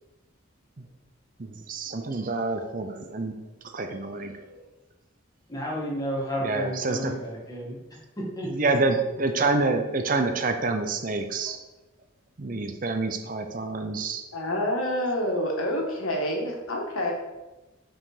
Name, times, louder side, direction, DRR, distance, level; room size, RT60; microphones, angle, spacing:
voice 1, 1.4-3.3 3.7-4.4 6.4-7.1 8.5-11.6 12.4-14.2, right 3 dB, 40° right, 6 dB, 0.6 m, -27 dB
voice 2, 5.5-7.8 8.3-8.5, equal, 15° left, -4 dB, 1.7 m, -31 dB
voice 3, 14.3-17.1, left 1 dB, 90° left, 0 dB, 1.5 m, -27 dB
5.9 x 4.9 x 4.9 m, 1.1 s
head